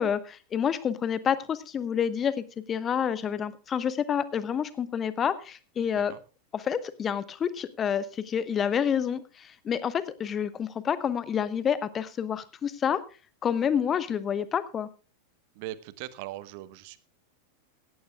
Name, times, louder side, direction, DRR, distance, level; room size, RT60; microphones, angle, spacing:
voice 1, 0.0-6.2 6.5-13.0 13.4-14.9, left 8 dB, 25° left, 15 dB, 1.1 m, -28 dB
voice 2, 15.5-17.0, right 15 dB, 45° right, 16 dB, 1.1 m, -40 dB
18.0 x 14.0 x 2.3 m, 0.33 s
figure-of-eight pair, 90°, 0 cm